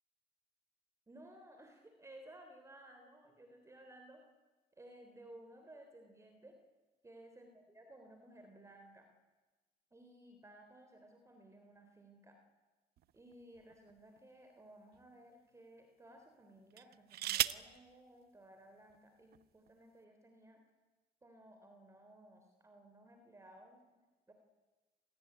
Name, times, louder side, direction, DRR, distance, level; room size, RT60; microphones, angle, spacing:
voice 1, 1.1-4.2 4.8-6.5 7.0-9.1 9.9-12.4 13.1-20.6 21.2-23.9 24.3-24.4, right 1 dB, 15° right, 5 dB, 3.6 m, -58 dB
sound 1, 13.0-14.2 14.9-15.1 16.7-17.8 18.9-19.0 19.3-19.7, right 14 dB, 70° right, 0.9 m, -38 dB
26.5 x 18.5 x 9.8 m, 1.2 s
cardioid pair, 110°, 17 cm